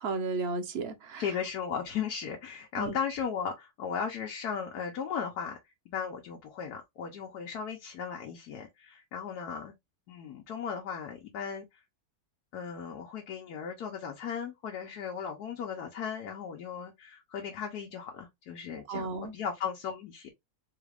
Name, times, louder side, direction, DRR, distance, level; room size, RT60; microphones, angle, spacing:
voice 1, 0.0-1.2 2.8-2.9 18.9-19.3, right 3 dB, 50° right, 0.9 m, -33 dB
voice 2, 1.2-5.6 5.9-9.7 10.1-11.8 12.5-20.3, left 7 dB, 85° left, 1.3 m, -36 dB
3.9 x 2.4 x 3.3 m
omnidirectional pair, 1.6 m